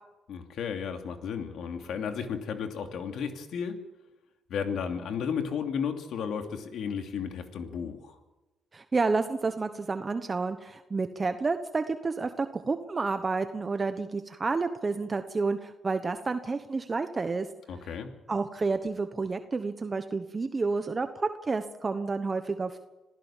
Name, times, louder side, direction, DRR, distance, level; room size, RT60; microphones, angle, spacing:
voice 1, 0.3-3.8 4.5-8.2 17.7-18.1, left 7 dB, 70° left, 5 dB, 2.8 m, -33 dB
voice 2, 8.7-17.5 18.3-22.8, right 4 dB, 30° right, 8 dB, 1.2 m, -30 dB
26.0 x 15.5 x 7.4 m, 1.1 s
cardioid pair, 90°, 0 cm